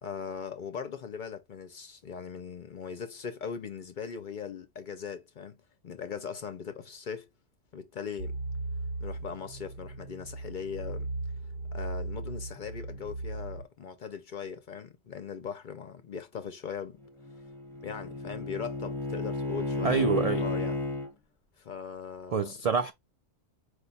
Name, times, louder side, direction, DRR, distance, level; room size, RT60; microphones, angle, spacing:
voice 1, 0.0-7.3 7.7-8.4 9.0-11.1 11.7-17.0 17.8-20.8 21.6-22.5, left 6 dB, 55° left, 0.6 m, -40 dB
sound 1, 8.2-13.6, right 2 dB, 50° right, 0.7 m, -37 dB
Bowed string instrument, 17.0-21.1, left 2 dB, ahead, 0.7 m, -33 dB
voice 2, 19.8-20.4 22.3-22.9, right 5 dB, 75° right, 0.3 m, -26 dB
4.9 x 2.2 x 3.9 m
omnidirectional pair, 1.2 m